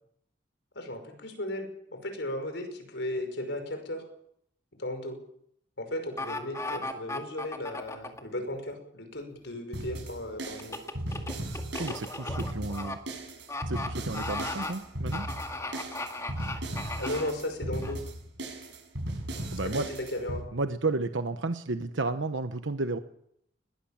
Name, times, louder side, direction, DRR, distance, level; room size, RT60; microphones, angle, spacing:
voice 1, 0.8-4.0 4.8-5.2 5.8-10.8 17.0-18.0 19.6-20.5, left 1 dB, 75° left, 6 dB, 5.6 m, -35 dB
sound 1, 6.2-8.2 10.6-13.0 13.5-13.9 14.1-14.7 15.1-17.3 17.8-17.9, left 2 dB, 15° left, 2.0 m, -36 dB
sound 2, 9.7-20.4, right 1 dB, 70° right, 6.9 m, -37 dB
voice 2, 11.8-13.0 13.7-15.3 19.5-19.9 20.5-23.0, right 3 dB, 85° right, 9 dB, 1.0 m, -32 dB
21.0 x 19.0 x 7.3 m, 0.73 s
head